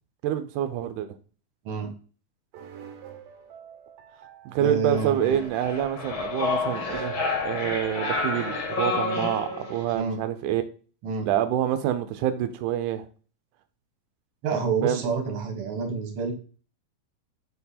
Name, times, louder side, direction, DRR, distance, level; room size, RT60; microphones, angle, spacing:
voice 1, 0.2-1.1 4.5-10.6 11.3-13.0 14.8-15.0, right 11 dB, 90° right, 9 dB, 2.1 m, -27 dB
sound 1, 2.5-10.2, right 8 dB, 70° right, 1.9 m, -46 dB
voice 2, 4.6-5.3 9.9-10.2 11.0-11.3 14.4-16.3, right 5 dB, 55° right, 4 dB, 2.2 m, -28 dB
sound 2, 4.9-9.9, left 3 dB, 55° left, 1.6 m, -29 dB
5.6 x 4.4 x 4.2 m, 0.38 s
omnidirectional pair, 3.5 m